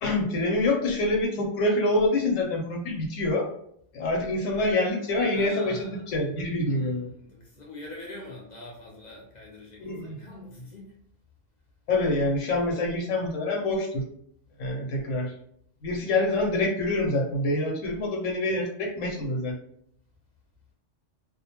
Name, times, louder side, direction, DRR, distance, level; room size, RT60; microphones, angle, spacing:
voice 1, 0.0-3.5 3.9-7.1 9.8-10.2 11.9-14.0 14.6-15.3 15.8-19.5, left 2 dB, 85° left, 0 dB, 1.0 m, -26 dB
voice 2, 5.3-6.1 6.7-10.9 14.9-15.0, left 2 dB, 45° left, -2 dB, 0.6 m, -44 dB
2.4 x 2.1 x 2.8 m, 0.68 s
omnidirectional pair, 1.3 m